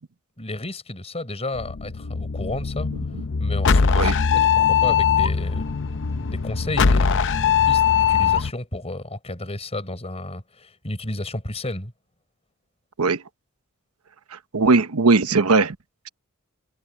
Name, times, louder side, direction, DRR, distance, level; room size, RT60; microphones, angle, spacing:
voice 1, 0.4-2.9 3.4-11.9, left 2 dB, 30° left, 4.9 m, -32 dB
sound 1, 1.6-8.5, left 6 dB, 60° left, 0.6 m, -21 dB
voice 2, 14.3-15.8, right 3 dB, 85° right, 1.0 m, -19 dB
head